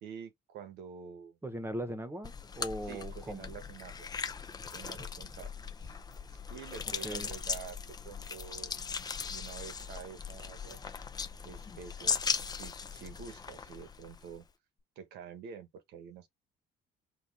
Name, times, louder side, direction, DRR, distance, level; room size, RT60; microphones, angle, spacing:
voice 1, 0.0-1.4 2.8-4.1 4.7-5.5 5.8-6.0 6.5-7.8 8.0-8.9 9.3-10.8 11.4-14.4 15.0-16.3, right 7 dB, 80° right, 1.2 m, -48 dB
voice 2, 1.4-3.5 7.0-7.3, right 1 dB, 15° right, 1.1 m, -39 dB
sound 1, 2.2-14.4, left 5 dB, 25° left, 0.5 m, -39 dB
4.2 x 2.6 x 3.6 m
cardioid pair, 110°, 17 cm